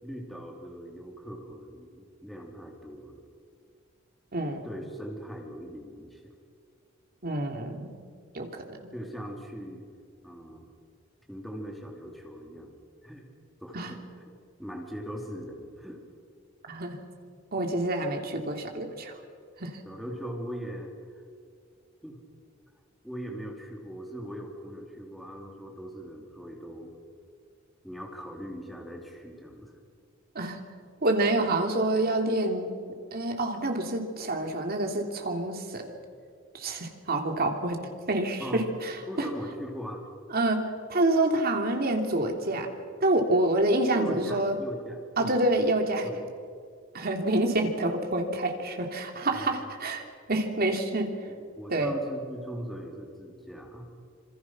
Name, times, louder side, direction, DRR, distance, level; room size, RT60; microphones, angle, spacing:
voice 1, 0.0-3.2 4.6-6.3 8.4-8.5 8.9-9.8 10.2-10.7 11.3-12.8 13.0-13.3 13.6-14.0 14.6-16.0 19.9-20.9 22.0-22.2 23.0-27.0 27.8-29.8 31.2-31.3 38.4-38.7 39.1-40.0 44.0-45.3 46.0-46.2 49.3-49.6 51.3-53.9, equal, ahead, 0 dB, 3.5 m, -40 dB
voice 2, 4.3-4.6 7.2-7.9 8.3-8.8 13.7-13.9 16.7-17.0 17.5-19.2 19.6-19.8 30.3-30.6 31.0-32.7 33.1-35.8 36.5-37.8 38.1-39.3 40.3-40.6 40.9-42.7 43.0-44.5 45.2-46.1 46.9-50.0 50.3-51.1 51.7-51.9, right 2 dB, 50° right, 3 dB, 3.1 m, -27 dB
26.5 x 26.0 x 6.1 m, 2.2 s
head